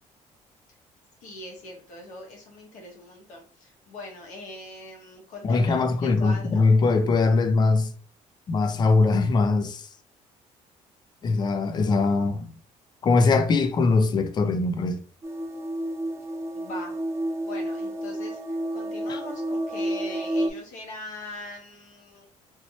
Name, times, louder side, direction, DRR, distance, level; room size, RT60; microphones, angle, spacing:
voice 1, 1.2-6.6 16.5-17.0 17.4-22.3, left 2 dB, 75° left, 1.3 m, -41 dB
voice 2, 5.4-7.9 8.5-9.9 11.2-12.5 13.0-15.0, left 3 dB, 35° left, 0.5 m, -21 dB
sound 1, 15.2-20.5, right 1 dB, 20° right, 0.6 m, -30 dB
3.1 x 3.0 x 2.8 m
cardioid pair, 120°, 13 cm